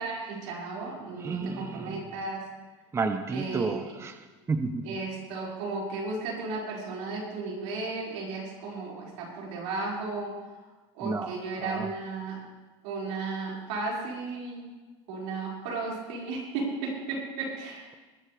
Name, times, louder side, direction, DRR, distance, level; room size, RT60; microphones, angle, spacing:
voice 1, 0.0-2.4 3.3-3.7 4.8-10.4 10.9-12.4 12.8-14.7 15.1-18.0, right 3 dB, 80° right, -4 dB, 5.4 m, -34 dB
voice 2, 1.2-2.0 2.9-4.2 4.5-4.8 11.0-11.3 11.6-11.9, right 4 dB, 20° right, 8 dB, 0.7 m, -31 dB
20.5 x 11.0 x 3.4 m, 1.2 s
supercardioid pair, 120°, 15 cm